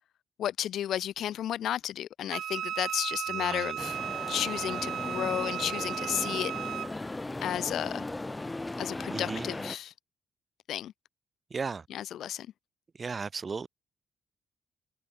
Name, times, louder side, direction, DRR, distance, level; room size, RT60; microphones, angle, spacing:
voice 1, 0.4-4.0 4.3-6.5 7.4-8.1 8.8-9.9 10.7-10.9 11.9-12.5, left 11 dB, 70° left, 0.8 m, -33 dB
Wind instrument woodwind instrument, 2.3-6.9, right 10 dB, 70° right, 1.3 m, -35 dB
voice 2, 3.3-3.8 9.1-9.5 11.5-11.8 13.0-13.7, right 5 dB, 35° right, 0.8 m, -35 dB
sound 1, 3.8-9.8, left 2 dB, 15° left, 4.7 m, -37 dB
cardioid pair, 90°, 0 cm